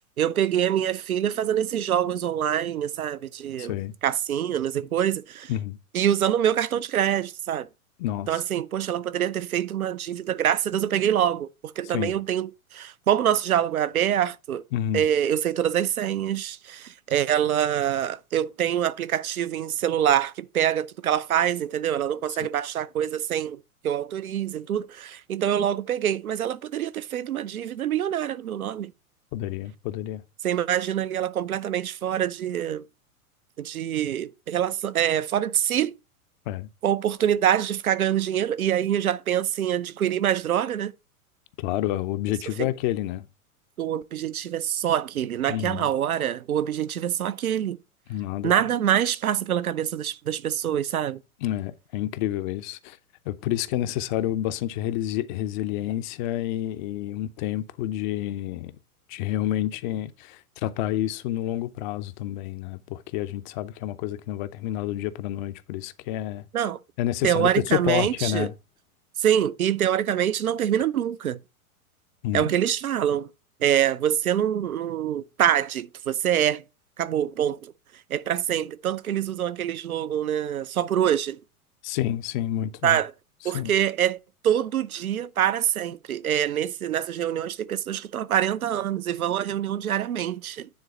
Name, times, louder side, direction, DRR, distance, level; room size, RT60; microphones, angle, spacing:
voice 1, 0.2-3.7 4.0-5.5 5.9-7.7 8.3-11.5 11.8-14.6 14.9-23.6 23.8-28.9 30.4-32.8 33.6-35.9 36.8-40.9 42.6-42.7 43.8-47.8 48.4-51.2 66.5-66.8 67.2-68.5 69.2-71.4 72.3-73.3 73.6-76.6 77.0-77.7 78.1-81.4 82.8-83.1 83.4-84.2 84.4-90.7, right 10 dB, 75° right, 0.7 m, -25 dB
voice 2, 3.6-3.9 5.5-5.8 8.0-8.4 11.9-12.1 14.7-15.0 29.3-30.2 36.5-36.7 41.6-43.2 45.5-45.9 48.1-48.5 51.4-53.0 53.3-58.7 59.1-66.5 67.0-68.5 72.2-72.5 81.8-83.0 83.5-83.7, left 13 dB, 35° left, 0.6 m, -29 dB
9.6 x 3.9 x 4.2 m
figure-of-eight pair, 100°, 44 cm